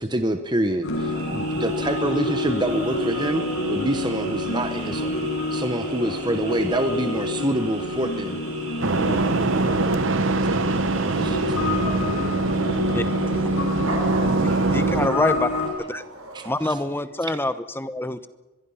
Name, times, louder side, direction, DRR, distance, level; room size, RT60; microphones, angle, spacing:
voice 1, 0.0-5.2 5.5-8.4 11.2-11.4 16.3-16.7, right 1 dB, 20° right, 7 dB, 1.0 m, -26 dB
sound 1, 0.8-15.7, left 2 dB, 65° left, 6.4 m, -28 dB
sound 2, 1.0-16.7, right 3 dB, 80° right, 5.3 m, -39 dB
voice 2, 6.0-7.2 9.1-10.7 11.0-15.1, left 2 dB, 40° left, -1 dB, 7.2 m, -43 dB
sound 3, 8.8-15.1, right 3 dB, 60° right, 0.9 m, -23 dB
voice 3, 14.7-15.5 15.9-16.0 16.4-18.3, left 2 dB, 10° left, 12 dB, 0.9 m, -25 dB
25.0 x 22.0 x 5.7 m, 1.1 s
head